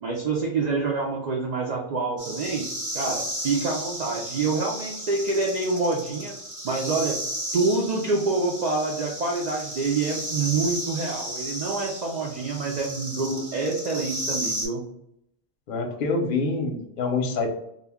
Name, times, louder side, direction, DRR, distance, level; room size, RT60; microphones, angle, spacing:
voice 1, 0.0-2.6 2.9-6.4 6.6-7.2 7.5-14.8, right 3 dB, 85° right, -1 dB, 0.3 m, -26 dB
sound 1, 2.2-14.7, equal, 20° right, 0.5 m, -34 dB
voice 2, 15.7-17.5, left 3 dB, 55° left, 3 dB, 0.6 m, -26 dB
2.2 x 2.2 x 3.4 m, 0.77 s
omnidirectional pair, 1.3 m